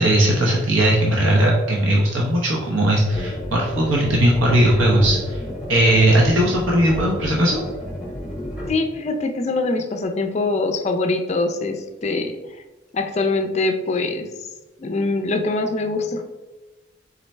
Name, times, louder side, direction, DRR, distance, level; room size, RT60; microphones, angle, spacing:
voice 1, 0.0-5.4 5.7-7.6, right 1 dB, 90° right, -2 dB, 0.7 m, -18 dB
sound 1, 3.1-8.7, left 1 dB, 5° right, 1.2 m, -30 dB
voice 2, 8.7-12.4 12.9-14.3 14.8-16.2, left 3 dB, 35° left, 6 dB, 0.4 m, -23 dB
4.2 x 3.9 x 3.2 m, 1.2 s
head